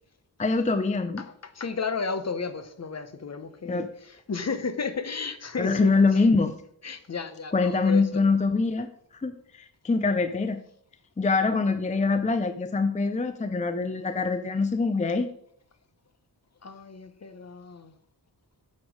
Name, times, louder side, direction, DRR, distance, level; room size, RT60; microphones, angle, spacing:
voice 1, 0.4-1.2 3.6-3.9 5.6-6.5 7.5-8.9 9.2-10.6 11.2-15.3, left 4 dB, 20° left, 9 dB, 0.5 m, -24 dB
voice 2, 1.2-6.3 6.8-8.2 16.6-17.9, left 5 dB, 40° left, 9 dB, 0.9 m, -33 dB
8.6 x 6.3 x 4.8 m, 0.67 s
wide cardioid pair, 125°, 38 cm